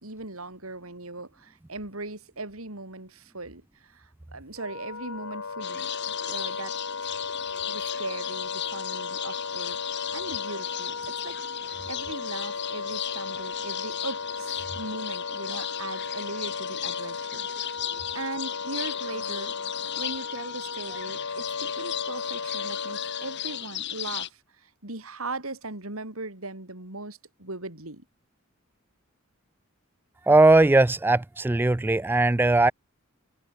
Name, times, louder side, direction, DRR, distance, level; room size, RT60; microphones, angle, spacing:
voice 1, 0.0-6.7 7.0-7.3 7.6-11.4 11.9-17.5 18.1-28.1, right 2 dB, 90° right, 5.2 m, -39 dB
Wind instrument woodwind instrument, 4.5-23.7, left 4 dB, 75° left, 1.4 m, -35 dB
sound 1, 5.6-24.3, left 12 dB, 55° left, 1.0 m, -36 dB
voice 2, 30.3-32.7, right 2 dB, 10° right, 0.3 m, -19 dB
head